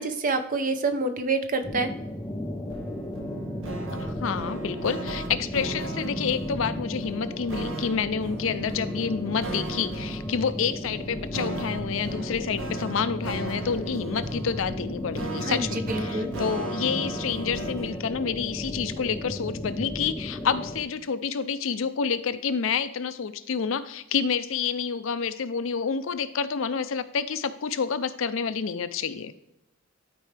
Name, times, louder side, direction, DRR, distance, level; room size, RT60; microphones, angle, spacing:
voice 1, 0.0-1.9 15.4-16.3, right 3 dB, 40° right, 8 dB, 0.7 m, -27 dB
sound 1, 1.6-20.8, left 1 dB, 10° left, 0.6 m, -35 dB
sound 2, 2.7-18.0, right 3 dB, 65° right, 1.0 m, -37 dB
voice 2, 3.9-29.3, left 6 dB, 70° left, 12 dB, 0.5 m, -29 dB
12.5 x 4.5 x 3.3 m, 0.86 s
head